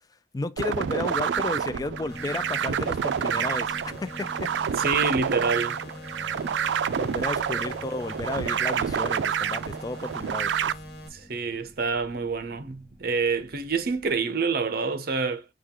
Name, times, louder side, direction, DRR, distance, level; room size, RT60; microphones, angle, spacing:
voice 1, 0.3-4.8 7.0-10.5, left 2 dB, 20° left, 0.4 m, -33 dB
sound 1, 0.6-10.7, right 8 dB, 80° right, 0.3 m, -28 dB
sound 2, 0.7-14.2, left 1 dB, 5° left, 1.0 m, -47 dB
sound 3, 2.1-11.1, equal, 60° left, 1.2 m, -43 dB
voice 2, 4.8-5.8 7.5-7.6 11.1-15.4, right 4 dB, 60° right, 0.7 m, -27 dB
6.2 x 2.3 x 3.6 m
head